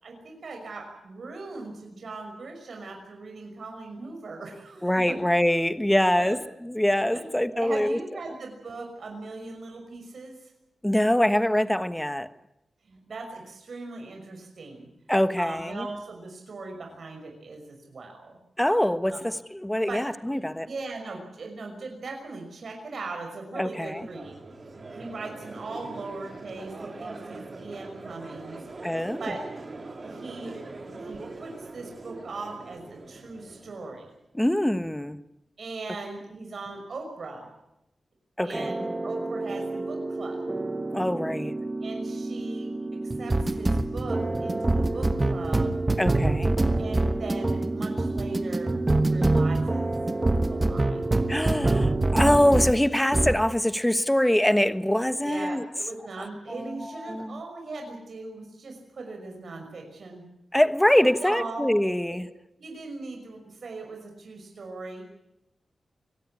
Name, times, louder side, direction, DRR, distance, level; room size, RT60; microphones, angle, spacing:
voice 1, 0.0-5.2 6.1-6.4 7.1-10.5 12.8-14.9 15.4-18.4 19.0-19.2 19.9-20.0 20.3-24.4 24.9-28.6 29.2-29.4 30.0-30.6 30.9-34.1 35.6-37.5 38.4-40.5 41.8-45.8 46.8-49.9 50.3-51.1 55.2-60.2 61.0-61.7 62.6-65.0, right 3 dB, 65° right, 3 dB, 5.9 m, -39 dB
voice 2, 4.8-8.0 10.8-12.3 15.1-15.9 18.6-20.7 23.5-24.1 28.8-29.2 34.3-35.2 38.4-38.7 40.9-41.5 46.0-46.6 51.3-55.7 56.5-57.4 60.5-62.3, left 1 dB, 5° left, 12 dB, 1.3 m, -24 dB
Crowd, 23.9-34.1, right 3 dB, 45° right, 3.7 m, -42 dB
sound 1, 38.5-52.8 53.1-53.4, right 2 dB, 25° right, 1.3 m, -26 dB
24.0 x 18.0 x 8.6 m, 0.87 s
wide cardioid pair, 95°, 0 cm